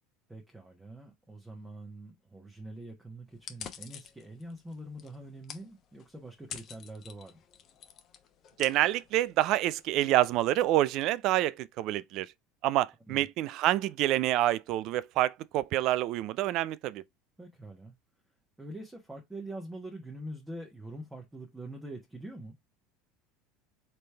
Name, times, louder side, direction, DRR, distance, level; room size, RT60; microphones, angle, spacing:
voice 1, 0.3-7.4 13.1-13.3 17.4-17.9 18.6-22.5, right 1 dB, 10° right, 1.2 m, -44 dB
sound 1, 3.3-11.1, left 8 dB, 45° left, 0.8 m, -49 dB
voice 2, 8.6-12.3 12.6-17.0, right 14 dB, 55° right, 0.3 m, -27 dB
4.1 x 3.4 x 3.3 m
hypercardioid pair, 80°, 0 cm